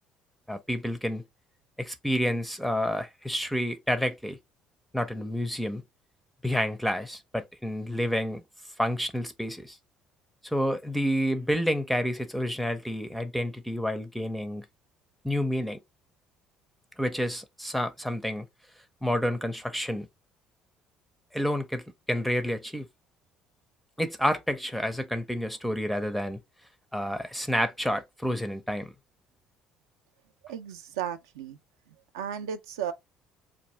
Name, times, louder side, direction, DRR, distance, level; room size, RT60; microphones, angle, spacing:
voice 1, 0.5-1.2 1.8-4.4 4.9-5.8 6.4-8.4 8.8-9.8 10.4-14.6 15.2-15.8 17.0-18.5 19.0-20.1 21.3-22.9 24.0-26.4 26.9-28.9, equal, 5° left, 0.5 m, -29 dB
voice 2, 30.4-31.6 32.1-32.9, right 9 dB, 70° right, 0.4 m, -34 dB
3.5 x 2.4 x 3.0 m
figure-of-eight pair, 50°, 3 cm